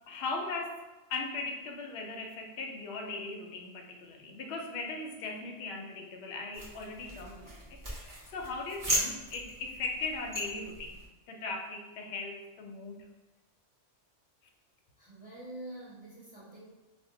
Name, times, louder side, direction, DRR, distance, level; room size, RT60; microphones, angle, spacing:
voice 1, 0.1-11.0 11.3-13.0, left 3 dB, 65° left, 2 dB, 0.8 m, -38 dB
sound 1, 6.5-11.1, right 1 dB, 30° right, 0.4 m, -37 dB
voice 2, 15.0-16.7, right 1 dB, 10° right, -9 dB, 0.9 m, -46 dB
2.6 x 2.2 x 3.6 m, 1.1 s
omnidirectional pair, 1.2 m